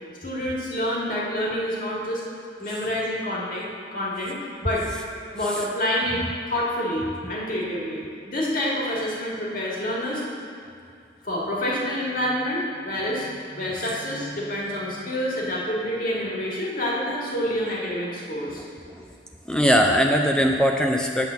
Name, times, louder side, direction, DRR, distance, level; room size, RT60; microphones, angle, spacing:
voice 1, 0.2-2.2 2.6-4.9 5.3-6.2 6.5-10.2 11.2-18.6, left 1 dB, 50° left, -4 dB, 1.8 m, -27 dB
voice 2, 19.5-21.3, equal, 5° left, 2 dB, 0.4 m, -21 dB
9.0 x 3.8 x 6.9 m, 2.5 s
head